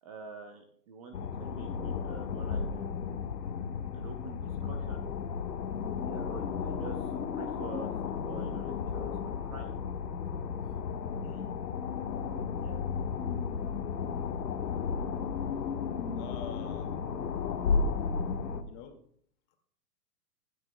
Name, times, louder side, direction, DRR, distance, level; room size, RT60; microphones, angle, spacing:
voice 1, 0.0-3.3 3.9-5.1 6.1-7.9 8.3-9.7 10.6-10.8 12.6-12.8, right 5 dB, 20° right, 6 dB, 0.6 m, -47 dB
sound 1, 1.1-18.6, left 6 dB, 75° left, 1.5 m, -34 dB
voice 2, 16.1-17.0 18.7-19.0 19.5-19.6, left 8 dB, 30° left, 5 dB, 2.0 m, -46 dB
25.0 x 9.3 x 2.2 m, 0.62 s
hypercardioid pair, 145°, 49 cm